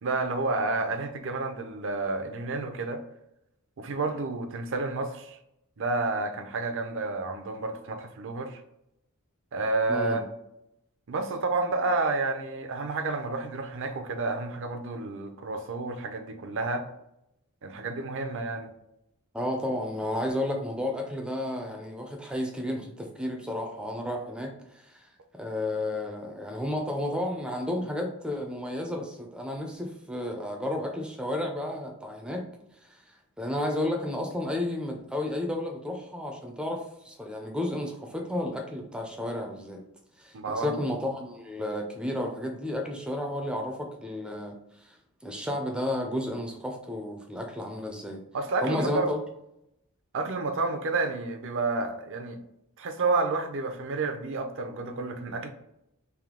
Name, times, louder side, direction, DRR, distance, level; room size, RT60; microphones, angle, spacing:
voice 1, 0.0-3.0 3.8-5.4 5.8-8.6 9.5-10.3 11.1-16.9 17.6-18.7 40.3-40.7 48.3-49.1 50.1-52.4 52.8-55.5, right 3 dB, 60° right, 0.5 m, -30 dB
voice 2, 9.9-10.2 19.3-32.5 32.8-39.8 40.2-45.0 45.2-48.2 48.6-49.2, left 1 dB, 5° right, 0.4 m, -32 dB
3.4 x 2.7 x 3.6 m
head